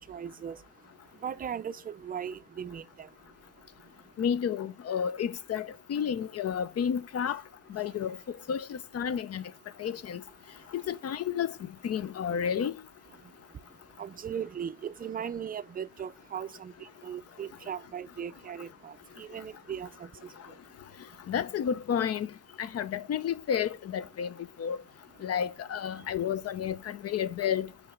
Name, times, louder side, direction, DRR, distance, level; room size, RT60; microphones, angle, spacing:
voice 1, 0.1-0.6 1.2-3.1 14.0-16.7 17.0-20.1, right 8 dB, 30° right, 0.5 m, -38 dB
voice 2, 4.2-7.4 7.7-8.2 8.5-9.4 9.8-10.2 10.7-12.8 21.3-22.3 22.6-24.3 24.6-24.8 25.2-27.7, left 8 dB, 55° left, 0.7 m, -31 dB
5.6 x 4.5 x 3.8 m
cardioid pair, 90°, 30 cm